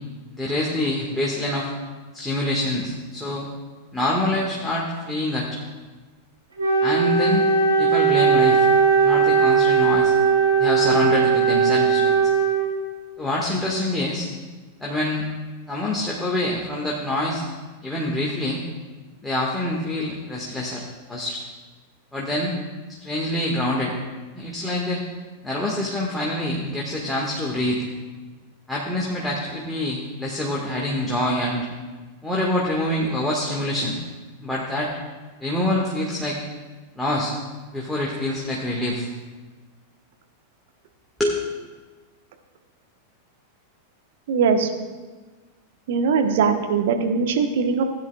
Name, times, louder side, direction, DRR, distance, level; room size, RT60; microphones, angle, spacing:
voice 1, 0.3-1.7 2.1-3.5 3.9-5.5 6.8-7.4 7.8-8.6 9.0-10.1 10.6-12.3 13.2-14.3 14.8-15.3 15.7-17.5 17.8-18.6 19.2-20.8 21.1-21.4 22.1-22.6 22.9-23.9 24.4-25.0 25.4-27.8 28.7-31.7 32.2-34.0 34.4-34.9 35.4-36.4 37.0-37.3 37.7-39.1 41.2-41.4, left 1 dB, 5° left, -4 dB, 1.7 m, -25 dB
Wind instrument woodwind instrument, 6.6-13.0, right 5 dB, 75° right, 3.6 m, -18 dB
voice 2, 44.3-44.7 45.9-47.8, right 5 dB, 55° right, 5 dB, 1.2 m, -21 dB
17.0 x 10.0 x 2.4 m, 1.3 s
figure-of-eight pair, 90°, 0 cm